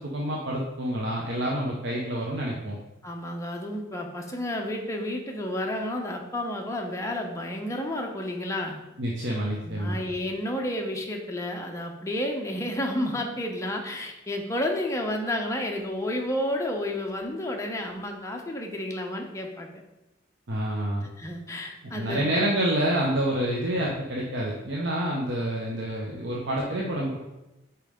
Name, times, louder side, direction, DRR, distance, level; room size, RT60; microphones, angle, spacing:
voice 1, 0.0-2.8 9.0-10.0 20.5-21.1 21.9-27.2, right 1 dB, 60° right, -3 dB, 0.9 m, -28 dB
voice 2, 3.0-8.8 9.6-19.8 21.2-22.3, left 1 dB, 15° left, 1 dB, 0.7 m, -31 dB
5.4 x 4.5 x 5.0 m, 0.97 s
head